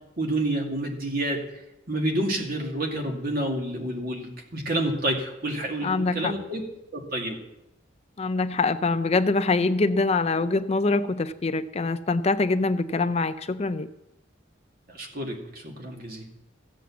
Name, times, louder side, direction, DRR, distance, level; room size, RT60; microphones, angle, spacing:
voice 1, 0.2-1.4 1.9-6.6 6.9-7.4 14.9-16.3, right 1 dB, 50° right, 1 dB, 2.4 m, -29 dB
voice 2, 5.8-6.3 8.2-13.9, left 3 dB, 35° left, 11 dB, 0.5 m, -24 dB
15.0 x 7.6 x 7.1 m, 0.89 s
head